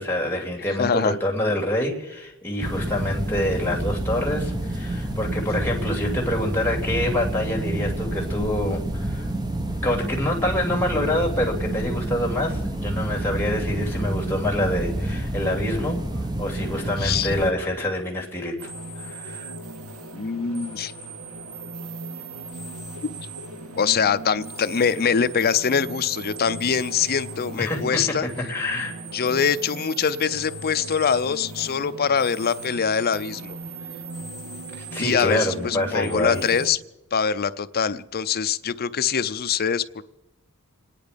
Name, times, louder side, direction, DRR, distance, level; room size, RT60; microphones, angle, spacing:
voice 1, 0.0-9.3 9.8-16.0 16.4-18.6 19.0-19.5 27.6-28.0 28.5-28.9 34.8-36.5, left 1 dB, 10° left, -1 dB, 2.8 m, -26 dB
voice 2, 0.8-1.2 17.0-17.3 20.1-20.9 23.8-28.3 29.1-33.6 35.0-36.8 37.1-40.0, left 6 dB, 45° left, 12 dB, 0.5 m, -23 dB
sound 1, 2.6-17.5, right 1 dB, 20° right, 1.0 m, -28 dB
sound 2, 18.6-36.7, right 3 dB, 70° right, 1.7 m, -38 dB
27.0 x 10.0 x 5.2 m, 0.92 s
head